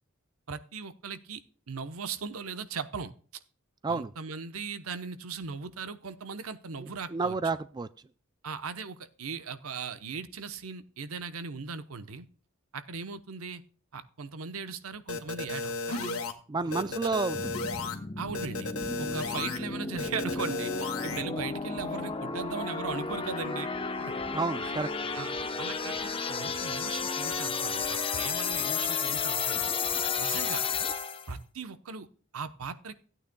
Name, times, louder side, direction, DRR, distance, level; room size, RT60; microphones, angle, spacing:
voice 1, 0.5-3.1 3.9-7.4 8.4-12.3 12.7-13.6 13.9-16.2 16.6-17.0 18.2-18.7 19.0-23.7 24.0-24.1 24.6-24.7 25.1-25.3 25.6-29.7 30.2-30.6 31.3-32.1 32.3-32.9, right 5 dB, 80° right, 11 dB, 0.9 m, -38 dB
voice 2, 7.1-7.9 16.5-17.5 24.3-24.9, right 3 dB, 20° right, 14 dB, 0.3 m, -30 dB
sound 1, 15.1-16.3 16.7-18.0 18.3-19.6 20.0-21.2, left 3 dB, 80° left, 1.7 m, -34 dB
sound 2, 17.3-31.3, left 5 dB, 25° left, 0.8 m, -32 dB
16.0 x 9.0 x 2.2 m, 0.40 s
head